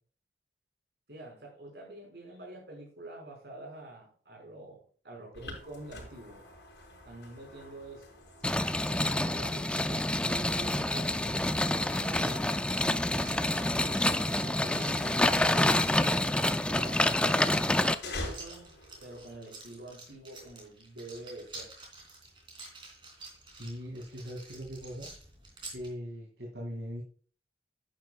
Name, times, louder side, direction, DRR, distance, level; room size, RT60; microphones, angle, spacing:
voice 1, 1.1-6.4 7.0-8.0 8.8-11.5 11.9-12.5 12.9-14.9 15.3-16.3 16.7-18.7 19.0-21.8, right 2 dB, 70° right, -1 dB, 5.5 m, -47 dB
sound 1, 5.3-19.4, left 2 dB, 85° left, 4.8 m, -48 dB
sound 2, 8.4-18.0, left 1 dB, 5° left, 0.3 m, -27 dB
sound 3, 11.4-25.9, right 3 dB, 30° right, 3.1 m, -50 dB
voice 2, 23.5-25.1 25.7-27.0, equal, 85° right, -2 dB, 2.5 m, -40 dB
11.0 x 9.3 x 2.4 m, 0.42 s
head